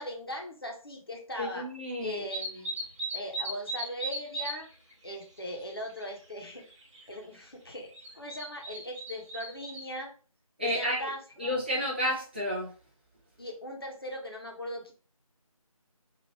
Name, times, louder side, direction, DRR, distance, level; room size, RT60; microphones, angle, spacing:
voice 1, 0.0-1.7 2.0-2.8 3.1-4.7 5.0-6.7 7.1-10.1 10.6-11.5 13.4-14.9, equal, 40° left, 1 dB, 0.9 m, -39 dB
voice 2, 1.4-2.3 10.6-11.1 11.4-12.7, left 1 dB, 15° right, -4 dB, 0.7 m, -31 dB
sound 1, 2.3-4.6 4.9-6.1 6.4-7.0 7.9-9.9, right 2 dB, 55° right, 1.0 m, -37 dB
2.9 x 2.5 x 4.3 m, 0.38 s
figure-of-eight pair, 165°, 19 cm